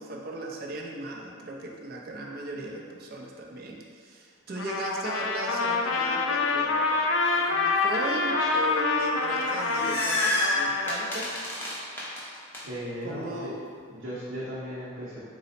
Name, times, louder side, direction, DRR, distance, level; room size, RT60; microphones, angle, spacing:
voice 1, 0.0-11.4 13.0-13.6, right 2 dB, 45° right, 0 dB, 0.4 m, -37 dB
Trumpet, 4.6-11.1, left 3 dB, 70° left, 0.3 m, -26 dB
sound 1, 9.3-12.6, left 1 dB, 10° left, 0.5 m, -29 dB
voice 2, 12.6-13.3 13.9-15.2, equal, 70° right, -10 dB, 0.8 m, -36 dB
3.9 x 2.0 x 4.1 m, 2.1 s
head